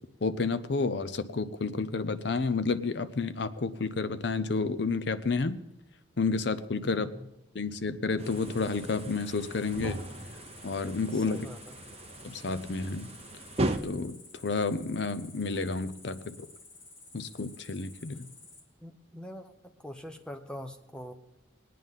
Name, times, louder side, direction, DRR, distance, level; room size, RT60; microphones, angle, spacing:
voice 1, 0.2-5.6 6.2-7.1 7.5-10.0 10.6-11.4 12.2-13.1 13.8-16.3 17.1-18.3, left 4 dB, 55° left, 13 dB, 0.6 m, -30 dB
voice 2, 6.9-7.3 11.1-11.8 18.8-21.1, equal, 5° left, 5 dB, 0.8 m, -44 dB
Cricket, 8.2-18.6, left 3 dB, 75° left, 2.7 m, -52 dB
sound 1, 8.2-13.8, right 1 dB, 30° right, 0.7 m, -37 dB
20.0 x 9.4 x 3.7 m, 0.87 s
head